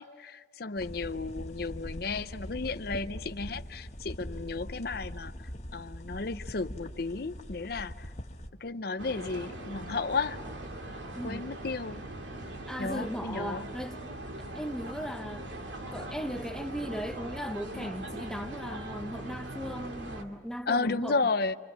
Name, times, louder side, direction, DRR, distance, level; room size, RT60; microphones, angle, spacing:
voice 1, 0.0-5.3 5.7-8.1 8.6-10.4 11.2-12.1 12.8-13.7 20.7-21.5, left 4 dB, 55° left, 0.7 m, -33 dB
sound 1, 0.8-8.5, equal, 40° left, 1.7 m, -42 dB
sound 2, 9.0-20.2, right 1 dB, 85° right, 2.4 m, -41 dB
voice 2, 11.1-11.5 12.7-14.0 14.5-15.5 15.9-21.2, equal, 5° left, 0.7 m, -37 dB
27.5 x 26.5 x 7.5 m
head